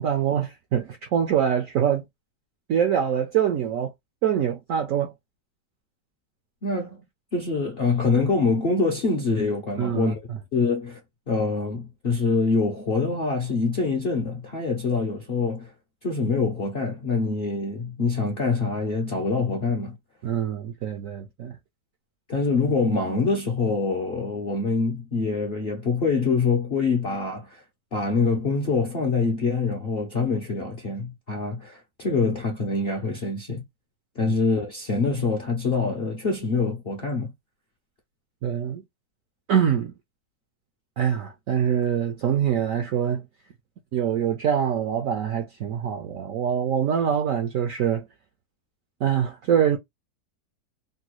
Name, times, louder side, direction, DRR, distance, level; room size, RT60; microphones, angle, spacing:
voice 1, 0.0-2.0 2.7-3.9 4.2-5.1 9.8-10.4 20.2-21.6 34.2-34.3 38.4-38.8 39.5-39.9 41.0-43.2 43.9-48.0 49.0-49.8, right 9 dB, 75° right, 0.7 m, -24 dB
voice 2, 6.6-7.0 7.3-10.1 10.5-11.0 11.3-15.7 16.0-20.0 22.3-27.6 27.9-33.6 34.2-37.3, left 4 dB, 55° left, 0.6 m, -25 dB
3.3 x 2.2 x 3.0 m
omnidirectional pair, 1.9 m